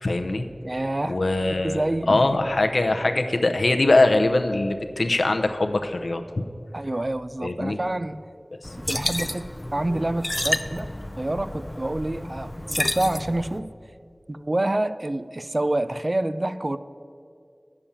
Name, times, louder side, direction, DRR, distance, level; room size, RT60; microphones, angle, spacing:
voice 1, 0.0-0.5 1.1-1.8 2.1-6.2 7.4-7.8, left 2 dB, 85° left, 7 dB, 0.6 m, -22 dB
voice 2, 0.6-1.2 1.6-2.3 6.7-8.2 8.9-13.7 14.3-16.8, right 1 dB, 45° right, 13 dB, 0.4 m, -27 dB
sound 1, 8.6-13.6, left 1 dB, 30° left, 0.4 m, -30 dB
8.7 x 6.9 x 7.2 m, 2.4 s
wide cardioid pair, 45°, 0 cm